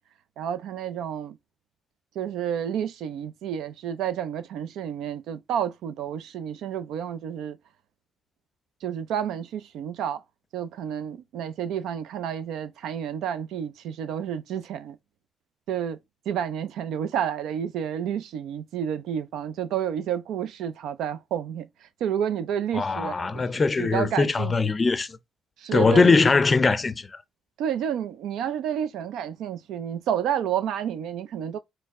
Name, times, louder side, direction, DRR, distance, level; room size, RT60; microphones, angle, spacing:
voice 1, 0.4-1.4 2.2-7.6 8.8-10.2 10.5-15.0 15.7-16.0 16.3-23.4 23.8-24.6 25.6-26.2 27.6-31.6, right 9 dB, 85° right, 0.4 m, -30 dB
voice 2, 22.7-25.2 25.7-27.1, left 4 dB, 30° left, 0.5 m, -21 dB
4.4 x 2.1 x 3.5 m
cardioid pair, 90°, 0 cm